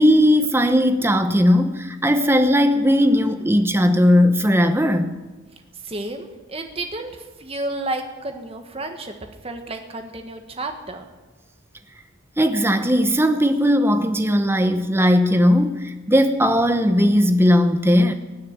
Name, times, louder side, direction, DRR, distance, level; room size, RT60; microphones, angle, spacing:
voice 1, 0.0-5.2 12.4-18.1, equal, 10° right, 0.9 m, -17 dB
voice 2, 5.8-11.0, right 2 dB, 30° right, 1.5 m, -31 dB
19.5 x 6.7 x 9.4 m
head